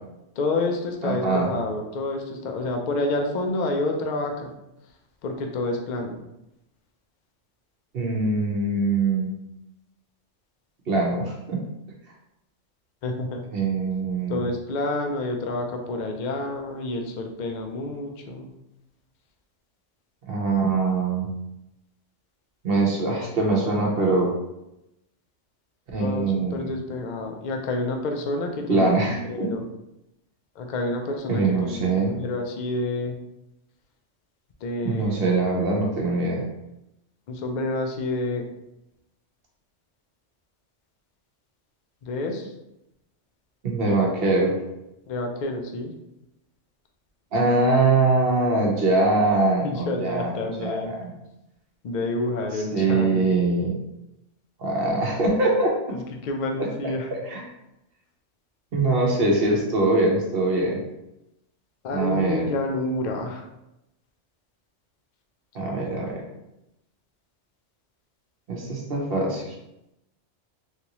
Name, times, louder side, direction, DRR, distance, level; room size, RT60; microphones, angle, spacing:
voice 1, 0.4-4.5 5.2-6.2 13.0-13.4 14.3-18.5 26.0-28.9 29.3-29.6 30.6-33.1 34.6-35.3 37.3-38.5 42.0-42.5 45.1-45.9 49.6-50.9 51.8-53.3 55.9-57.1 61.8-63.5, left 2 dB, 60° left, 3 dB, 0.5 m, -29 dB
voice 2, 1.0-1.5 7.9-9.3 10.9-11.6 13.5-14.4 20.3-21.3 22.6-24.3 25.9-26.7 28.7-29.5 31.3-32.1 34.8-36.4 43.6-44.5 47.3-50.3 50.6-51.1 52.5-53.8 54.6-56.0 57.3-57.4 58.7-60.8 61.9-62.5 65.5-66.2 68.5-69.6, right 3 dB, 55° right, -1 dB, 0.9 m, -23 dB
3.3 x 2.6 x 2.8 m, 0.88 s
omnidirectional pair, 1.2 m